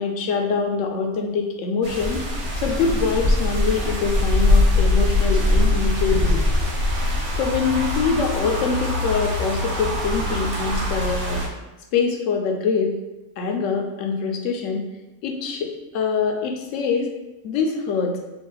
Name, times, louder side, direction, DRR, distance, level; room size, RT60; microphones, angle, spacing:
voice 1, 0.0-2.3 2.6-6.4 7.4-11.5 11.9-12.9 13.4-14.8 15.2-17.1 17.4-18.2, left 5 dB, 65° left, 3 dB, 0.9 m, -24 dB
sound 1, 1.8-11.5, left 1 dB, 75° right, 1.4 m, -22 dB
3.4 x 2.3 x 3.8 m, 1.0 s
omnidirectional pair, 1.6 m